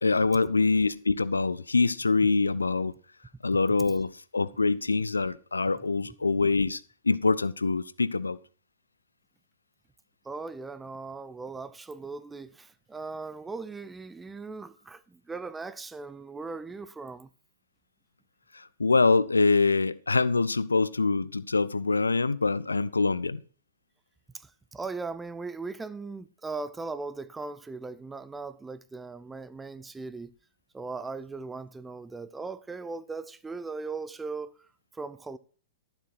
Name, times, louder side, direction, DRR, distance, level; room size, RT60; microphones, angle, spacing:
voice 1, 0.0-2.9 3.4-8.4 18.5-23.4, left 3 dB, 75° left, 0.5 m, -25 dB
voice 2, 10.2-17.3 24.3-30.3 30.7-34.5 34.9-35.4, right 4 dB, 10° right, 0.5 m, -38 dB
12.5 x 7.4 x 4.4 m
figure-of-eight pair, 110°, 0 cm